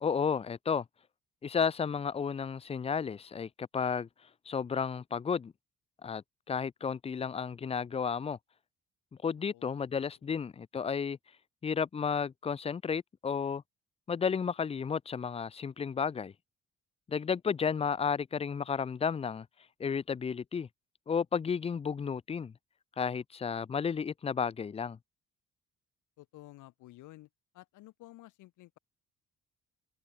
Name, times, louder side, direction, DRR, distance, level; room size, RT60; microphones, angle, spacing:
voice 1, 0.0-0.8 1.4-4.1 4.5-5.5 6.0-8.4 9.2-11.2 11.6-13.6 14.1-16.3 17.1-19.5 19.8-20.7 21.1-22.5 23.0-25.0, left 6 dB, 20° left, 0.4 m, -32 dB
voice 2, 9.4-10.3 26.2-27.3 27.5-28.8, left 17 dB, 90° left, 1.5 m, -54 dB
open air
cardioid pair, 90°, 30 cm